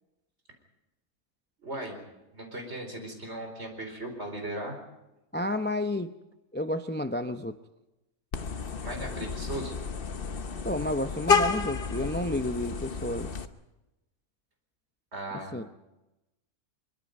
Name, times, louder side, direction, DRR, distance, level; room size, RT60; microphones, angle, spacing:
voice 1, 1.6-2.0 2.3-4.8 8.8-9.8 15.1-15.6, right 1 dB, 50° right, 4 dB, 4.8 m, -37 dB
voice 2, 5.3-6.1 6.5-7.6 10.6-13.3 15.5-15.7, left 1 dB, 15° left, 8 dB, 0.3 m, -31 dB
Vehicle horn car horn honking, 8.3-13.5, left 5 dB, 45° left, 1.1 m, -30 dB
23.5 x 23.0 x 5.4 m, 0.97 s
omnidirectional pair, 1.4 m